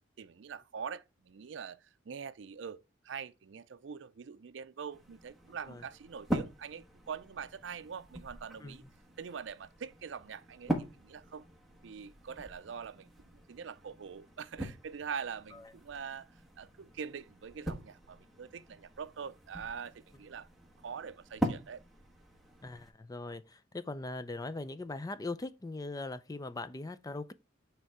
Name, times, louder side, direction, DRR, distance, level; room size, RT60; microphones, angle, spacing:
voice 1, 0.2-8.8 9.2-11.5 11.8-20.5 20.8-21.8, right 6 dB, 70° right, 0.4 m, -44 dB
sound 1, 4.9-22.9, equal, ahead, 1.2 m, -42 dB
voice 2, 22.6-27.3, left 2 dB, 20° left, 0.4 m, -40 dB
9.0 x 3.4 x 4.7 m
head